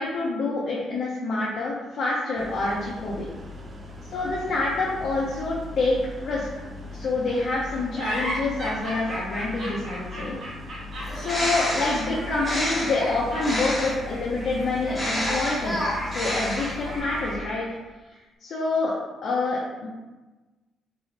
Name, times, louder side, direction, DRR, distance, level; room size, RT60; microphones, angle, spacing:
voice 1, 0.0-3.2 4.1-6.5 6.9-10.4 11.1-17.7 18.4-18.9 19.2-19.9, left 3 dB, 60° left, -5 dB, 0.6 m, -27 dB
sound 1, 2.4-17.4, left 3 dB, 40° right, 0.5 m, -39 dB
sound 2, 7.9-17.8, right 1 dB, 60° right, 1.2 m, -36 dB
Bird, 11.0-14.1 14.8-17.0, equal, ahead, 1.4 m, -29 dB
3.1 x 3.0 x 2.8 m, 1.2 s
cardioid pair, 90°, 0 cm